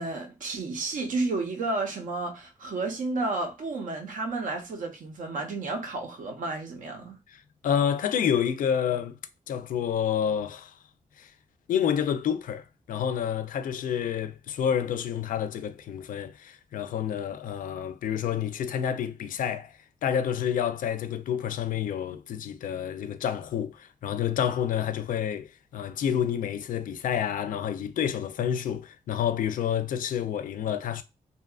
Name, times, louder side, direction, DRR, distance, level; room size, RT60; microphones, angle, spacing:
voice 1, 0.0-7.2, right 3 dB, 65° right, 0.7 m, -31 dB
voice 2, 7.3-9.2 9.5-10.7 11.2-11.3 11.7-31.0, left 8 dB, 75° left, 0.4 m, -29 dB
2.7 x 2.3 x 2.3 m
wide cardioid pair, 125°, 14 cm